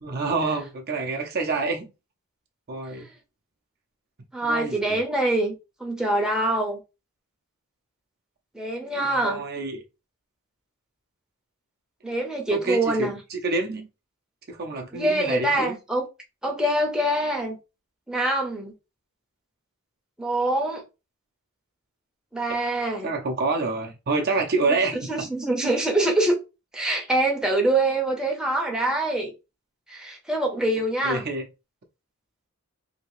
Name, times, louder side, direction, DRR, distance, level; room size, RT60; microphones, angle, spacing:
voice 1, 0.0-1.9 2.7-3.1 4.4-5.0 9.0-9.8 12.5-13.9 14.5-15.8 23.0-25.1 25.6-25.7 31.0-31.5, right 3 dB, 45° right, 0.6 m, -27 dB
voice 2, 4.3-5.5 5.8-6.8 8.5-9.4 12.0-13.2 14.9-16.0 16.4-17.6 18.1-18.7 20.2-20.8 22.3-23.1 24.7-26.3 26.7-29.3 29.9-31.3, right 1 dB, 5° right, 0.6 m, -24 dB
2.8 x 2.7 x 3.0 m
head